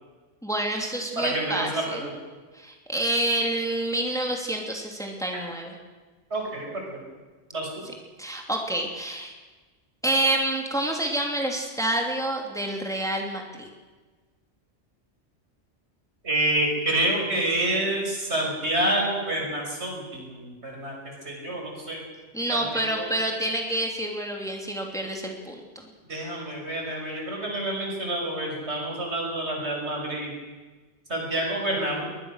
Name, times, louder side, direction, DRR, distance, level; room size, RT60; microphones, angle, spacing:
voice 1, 0.4-2.0 2.5-5.8 8.2-9.3 10.0-13.7 22.3-25.6, right 1 dB, 5° left, 1 dB, 3.0 m, -28 dB
voice 2, 1.2-2.1 6.3-6.7 6.9-7.0 7.5-7.7 16.2-20.9 21.2-22.0 22.5-23.1 26.1-30.3 31.1-32.1, right 1 dB, 75° right, 0 dB, 6.1 m, -28 dB
22.5 x 20.5 x 6.6 m, 1.3 s
omnidirectional pair, 1.2 m